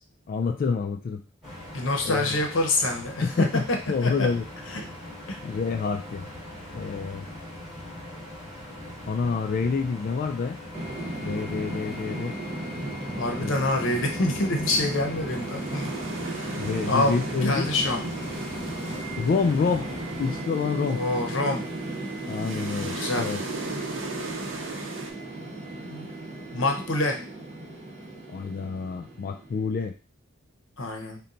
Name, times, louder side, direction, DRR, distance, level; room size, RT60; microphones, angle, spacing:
voice 1, 0.3-1.2 2.0-2.4 3.2-4.5 5.4-6.3 6.7-7.3 9.1-10.6 11.2-12.4 13.4-13.7 16.6-17.7 19.2-19.9 20.2-21.0 22.3-23.4 28.3-29.9, left 5 dB, 45° left, 6 dB, 0.3 m, -27 dB
sound 1, 1.4-20.4, left 1 dB, ahead, 2.1 m, -41 dB
voice 2, 1.7-3.3 4.0-4.3 4.7-4.9 5.3-5.4 13.2-16.6 16.9-17.2 17.4-18.0 20.9-21.6 22.8-23.3 25.8-27.2 30.8-31.2, left 2 dB, 75° left, 3 dB, 0.8 m, -27 dB
sound 2, 10.7-29.9, right 1 dB, 30° right, 1.0 m, -35 dB
sound 3, 15.3-25.1, right 3 dB, 70° right, 0.7 m, -38 dB
4.1 x 2.2 x 3.8 m, 0.34 s
head